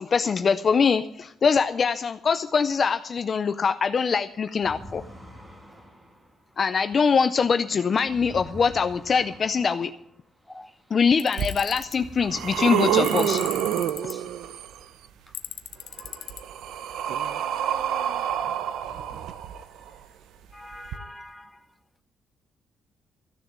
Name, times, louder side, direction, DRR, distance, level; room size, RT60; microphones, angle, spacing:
voice 1, 0.0-5.0 6.6-9.9 10.9-13.4, left 5 dB, 30° left, 0.5 m, -23 dB
sound 1, 4.5-11.5 11.8-14.5, equal, 15° right, 1.8 m, -48 dB
Tools, 11.2-12.0 13.0-14.1 15.3-16.4, left 11 dB, 65° left, 0.8 m, -37 dB
sound 2, 11.4-11.5 12.0-14.8 16.0-19.9 20.9-21.0, right 10 dB, 80° right, 0.8 m, -27 dB
voice 2, 20.5-21.5, left 1 dB, 5° left, 0.9 m, -43 dB
14.5 x 6.9 x 9.3 m
cardioid pair, 175°, 0 cm